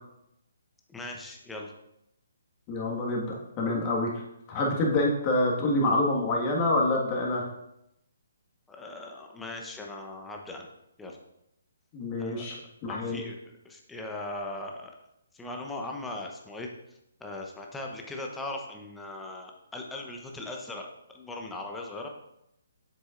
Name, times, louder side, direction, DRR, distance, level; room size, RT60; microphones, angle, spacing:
voice 1, 0.9-1.7 8.7-10.7 11.0-11.2 12.2-12.6 12.9-14.9 15.3-16.7 17.2-20.9 21.1-22.1, left 2 dB, 10° left, 1 dB, 0.9 m, -39 dB
voice 2, 2.7-4.1 4.5-7.5 11.9-12.6 12.8-13.2, left 2 dB, 25° left, -2 dB, 1.7 m, -26 dB
7.8 x 6.1 x 2.5 m, 0.83 s
figure-of-eight pair, 140°, 0 cm